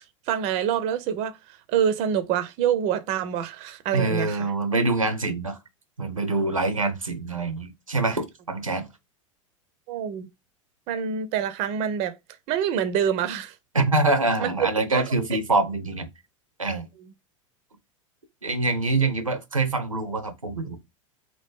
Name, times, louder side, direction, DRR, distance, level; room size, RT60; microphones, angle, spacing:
voice 1, 0.3-1.4 1.7-4.4 9.9-10.3 10.9-12.1 12.5-13.5 14.4-14.5 14.9-15.0, right 9 dB, 40° right, 0.4 m, -26 dB
voice 2, 3.9-5.6 6.0-8.9 13.7-16.1 16.6-16.9 18.4-20.8, right 2 dB, 85° right, 0.5 m, -25 dB
2.8 x 2.4 x 3.5 m
figure-of-eight pair, 80°, 17 cm